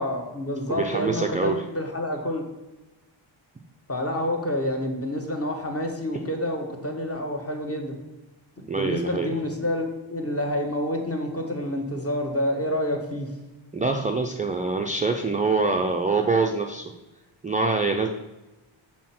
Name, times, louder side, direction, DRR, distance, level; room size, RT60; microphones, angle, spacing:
voice 1, 0.0-2.4 3.9-7.9 8.6-13.3, left 1 dB, 30° left, 2 dB, 1.3 m, -28 dB
voice 2, 0.7-1.6 8.7-9.3 13.7-16.8 17.4-18.1, right 4 dB, 15° right, 2 dB, 0.4 m, -24 dB
6.3 x 4.3 x 5.8 m, 1.0 s
wide cardioid pair, 120°, 49 cm